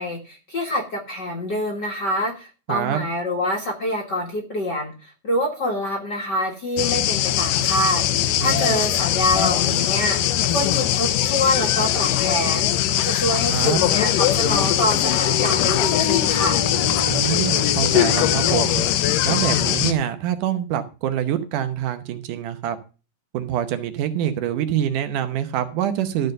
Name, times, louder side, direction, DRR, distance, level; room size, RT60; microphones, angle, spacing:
voice 1, 0.0-10.2 10.5-12.7 13.0-16.6, left 1 dB, 45° left, 1 dB, 1.5 m, -26 dB
voice 2, 2.7-3.0 8.4-8.9 13.5-13.9 17.1-18.8 19.2-22.8 23.3-26.3, right 10 dB, 75° right, 9 dB, 2.4 m, -25 dB
sound 1, 6.8-19.9, left 12 dB, 85° left, 2.4 m, -21 dB
Bowed string instrument, 15.1-19.3, left 1 dB, 40° right, 1.7 m, -33 dB
13.5 x 4.5 x 6.4 m, 0.33 s
omnidirectional pair, 3.8 m